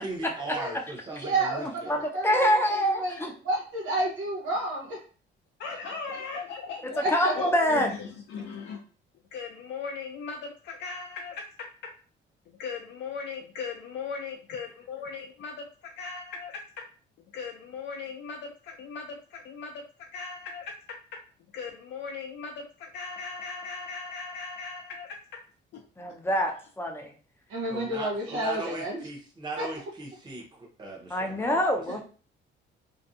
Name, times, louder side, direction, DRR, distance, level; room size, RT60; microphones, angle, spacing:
voice 1, 0.0-2.0 27.7-31.6, right 2 dB, 20° right, -2 dB, 0.8 m, -38 dB
voice 2, 1.1-1.8 2.1-3.2 3.4-5.0 6.8-7.7 27.5-29.0 29.6-29.7 31.9-32.0, right 2 dB, 80° right, -3 dB, 0.7 m, -30 dB
voice 3, 1.9-3.3 7.1-7.9 26.0-27.1 31.1-32.0, equal, 10° left, 2 dB, 0.5 m, -25 dB
voice 4, 5.6-7.0 7.3-8.8 9.3-11.9 12.6-15.5 16.0-16.8 17.3-19.9 20.1-21.0 21.5-25.4 25.7-25.8, left 5 dB, 70° left, 1 dB, 0.4 m, -38 dB
2.5 x 2.2 x 2.6 m, 0.38 s
cardioid pair, 125°, 19 cm